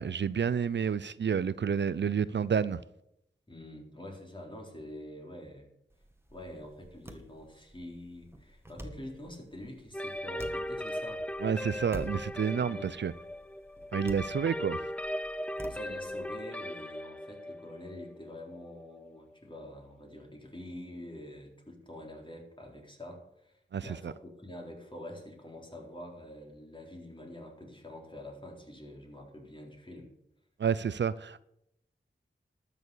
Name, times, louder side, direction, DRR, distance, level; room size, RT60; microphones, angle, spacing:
voice 1, 0.0-2.8 11.4-13.1 13.9-14.8 23.7-24.1 30.6-31.4, right 7 dB, 65° right, 0.5 m, -30 dB
voice 2, 3.5-5.7 6.3-11.3 12.7-12.9 15.7-30.1, left 1 dB, 25° left, 4.1 m, -46 dB
sound 1, 5.9-16.4, equal, 10° right, 1.9 m, -49 dB
sound 2, 9.9-19.6, equal, 5° left, 0.5 m, -38 dB
12.5 x 7.1 x 8.4 m
cardioid pair, 50°, 20 cm